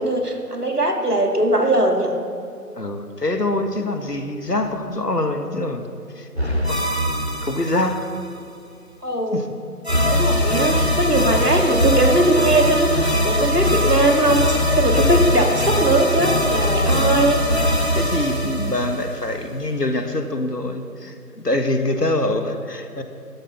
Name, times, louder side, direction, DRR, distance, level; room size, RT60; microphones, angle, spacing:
voice 1, 0.0-2.2 9.0-9.4 9.9-17.4, right 1 dB, 70° right, 3 dB, 2.2 m, -20 dB
voice 2, 2.7-5.9 6.1-7.1 7.4-8.0 9.3-9.5 15.3-15.5 16.9-17.2 17.9-23.0, left 2 dB, 75° left, 7 dB, 1.6 m, -25 dB
sound 1, 6.4-8.2 9.8-19.6, equal, 40° right, 1.0 m, -21 dB
13.0 x 11.0 x 5.8 m, 2.5 s
figure-of-eight pair, 175°, 48 cm